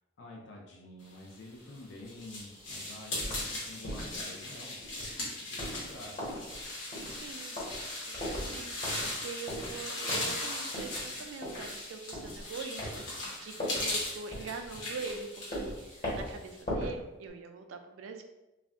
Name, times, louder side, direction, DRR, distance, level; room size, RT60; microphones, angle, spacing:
voice 1, 0.2-6.5, left 1 dB, 60° left, -1 dB, 0.4 m, -49 dB
sound 1, 1.4-16.6, left 2 dB, 90° left, 1.1 m, -39 dB
sound 2, 3.2-3.4 3.8-4.2 4.8-5.2 5.6-5.9 6.2-6.6 6.9-7.3 7.6-7.8 8.1-8.6 8.8-9.1 9.5-9.7 10.1-10.4 10.7-11.1 11.4-11.7 12.1-12.4 12.8-13.0 13.6-13.9 14.3-15.2 15.5-15.8 16.0-16.3 16.6-17.0 17.3-17.4, equal, 45° left, 1.1 m, -38 dB
voice 2, 7.1-7.7 8.1-18.2, right 4 dB, 85° right, 6 dB, 0.3 m, -43 dB
2.4 x 2.1 x 3.4 m, 1.0 s
head